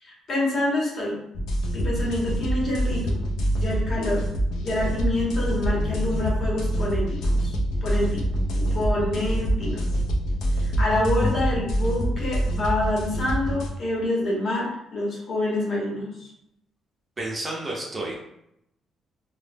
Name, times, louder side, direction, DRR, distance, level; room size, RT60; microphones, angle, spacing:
voice 1, 0.0-1.2 1.7-3.2 3.5-4.2 4.6-7.5 7.8-8.3 8.5-9.9 10.5-16.3, left 1 dB, 45° left, -3 dB, 0.8 m, -27 dB
sound 1, 1.3-13.7, equal, 75° left, 0.4 m, -25 dB
voice 2, 17.2-18.2, right 2 dB, 25° right, -3 dB, 0.5 m, -31 dB
2.1 x 2.0 x 3.2 m, 0.79 s
cardioid pair, 145°, 0 cm